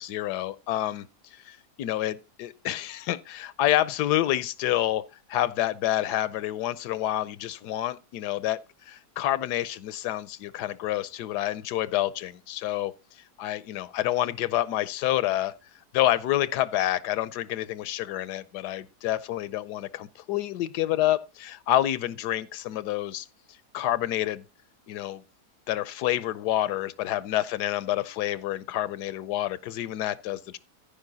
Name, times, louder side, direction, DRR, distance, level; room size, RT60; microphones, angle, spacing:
voice 1, 0.0-5.0 5.3-15.5 15.9-23.3 23.7-24.4 24.9-25.2 25.7-30.6, left 13 dB, 85° left, 1.2 m, -28 dB
14.5 x 5.1 x 3.9 m
omnidirectional pair, 1.7 m